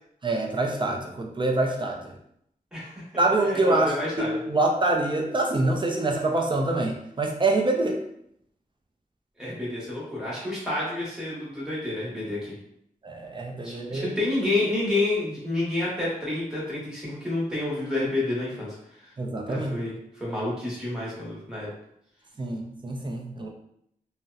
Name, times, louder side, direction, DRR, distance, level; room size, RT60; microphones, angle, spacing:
voice 1, 0.2-2.1 3.2-8.0 13.0-14.1 19.2-19.8 22.4-23.5, right 2 dB, 30° right, 0 dB, 0.3 m, -25 dB
voice 2, 3.4-4.3 9.4-12.5 13.6-18.7 19.5-21.7, left 2 dB, 5° right, -7 dB, 1.1 m, -29 dB
2.7 x 2.0 x 2.3 m, 0.73 s
wide cardioid pair, 120°, 15 cm